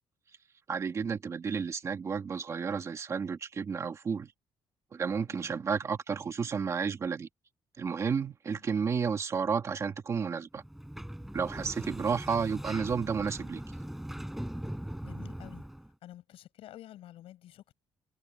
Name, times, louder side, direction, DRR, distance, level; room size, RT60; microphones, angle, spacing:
voice 1, 0.7-4.3 4.9-7.3 7.8-10.6 11.3-13.6, right 6 dB, 30° right, 2.4 m, -32 dB
Sliding door, 10.6-15.9, right 1 dB, 5° right, 6.9 m, -40 dB
voice 2, 15.0-15.6 16.0-17.7, left 13 dB, 90° left, 7.1 m, -50 dB
cardioid pair, 175°, 9 cm